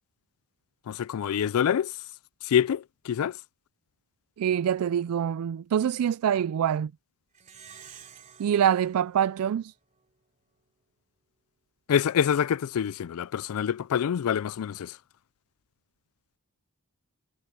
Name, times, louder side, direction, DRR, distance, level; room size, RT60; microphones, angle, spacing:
voice 1, 0.9-1.9 2.4-3.4 11.9-15.0, left 8 dB, 70° left, 0.3 m, -26 dB
voice 2, 4.4-6.9 8.4-9.7, right 9 dB, 75° right, 0.3 m, -25 dB
Plucked string instrument, 7.3-10.2, right 7 dB, 35° right, 3.1 m, -51 dB
head